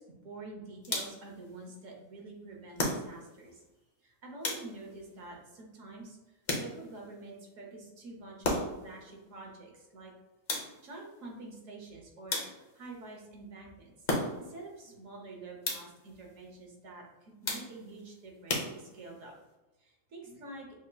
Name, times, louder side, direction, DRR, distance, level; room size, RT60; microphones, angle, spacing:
voice 1, 0.0-3.6 4.0-10.1 10.8-14.1 14.4-19.3 19.8-20.7, right 2 dB, 70° right, 0 dB, 1.3 m, -47 dB
sound 1, 0.8-1.4 2.8-3.4 4.4-5.0 6.5-7.1 8.4-8.9 10.5-11.0 12.3-12.9 14.1-14.6 15.6-16.1 17.4-18.0 18.5-19.2, left 2 dB, 40° left, 0.7 m, -35 dB
6.2 x 2.8 x 2.2 m, 1.1 s
omnidirectional pair, 1.4 m